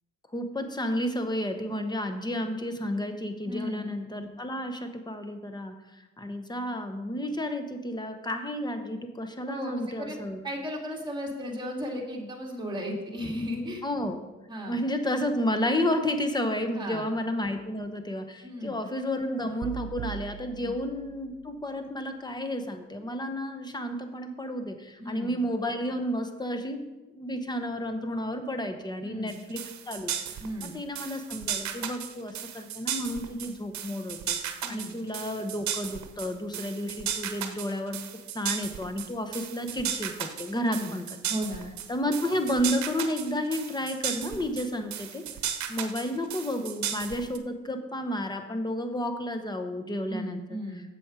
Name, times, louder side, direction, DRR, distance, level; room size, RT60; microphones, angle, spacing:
voice 1, 0.3-10.4 13.8-14.2 14.7-26.8 27.1-29.6 29.9-38.0 38.3-41.0 41.9-45.2 45.7-50.6, left 1 dB, 15° left, 7 dB, 1.1 m, -31 dB
voice 2, 3.5-3.9 9.5-10.2 10.4-13.8 14.5-14.8 16.7-17.1 18.4-18.7 20.6-20.7 25.0-25.3 29.0-29.3 30.4-30.7 34.6-34.9 40.7-40.9 41.3-41.7 50.1-50.8, equal, 15° right, -1 dB, 2.2 m, -35 dB
sound 1, 19.6-21.8, right 13 dB, 50° right, 0.4 m, -41 dB
sound 2, 29.3-47.4, right 9 dB, 65° right, 0.9 m, -35 dB
7.7 x 7.2 x 5.0 m, 1.1 s
cardioid pair, 90°, 30 cm